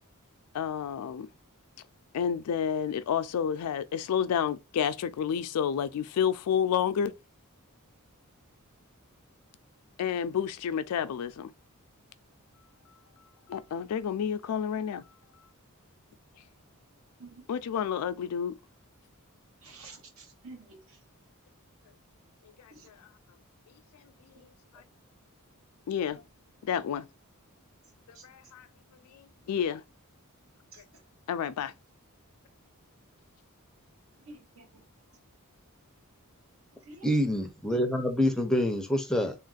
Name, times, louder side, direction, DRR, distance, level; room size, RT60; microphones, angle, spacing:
voice 1, 0.5-1.3 2.1-7.1 10.0-11.5 13.5-15.0 17.5-18.5 22.6-23.0 24.7-24.8 25.9-26.2 26.6-27.1 28.2-28.7 29.1-29.8 31.3-31.7, left 8 dB, 80° left, 0.3 m, -30 dB
voice 2, 19.6-21.0 22.7-22.9 24.4-24.5 28.1-28.2 30.7-30.8 34.3-34.8 36.8-37.1, right 3 dB, 65° right, 0.9 m, -50 dB
voice 3, 37.0-39.4, equal, 5° left, 0.5 m, -26 dB
3.4 x 2.5 x 2.3 m
head